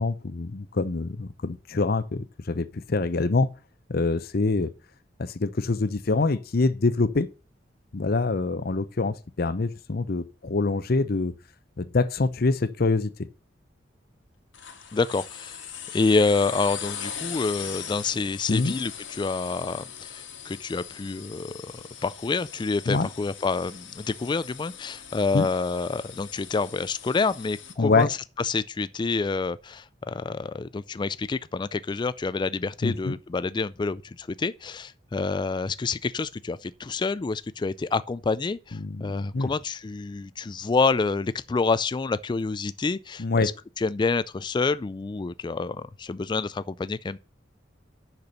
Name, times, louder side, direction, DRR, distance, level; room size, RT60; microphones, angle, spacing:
voice 1, 0.0-3.5 3.9-4.7 5.2-7.3 7.9-11.3 11.8-13.3 18.5-18.7 22.9-23.1 25.3-25.5 27.8-28.1 32.8-33.1 38.8-39.5 43.2-43.5, left 3 dB, 55° left, 0.7 m, -25 dB
sound 1, 14.5-27.7, left 8 dB, 90° left, 1.9 m, -40 dB
voice 2, 14.9-15.6 15.9-21.7 22.0-43.5 43.8-47.2, left 4 dB, 25° left, 0.3 m, -28 dB
6.7 x 6.0 x 6.6 m
head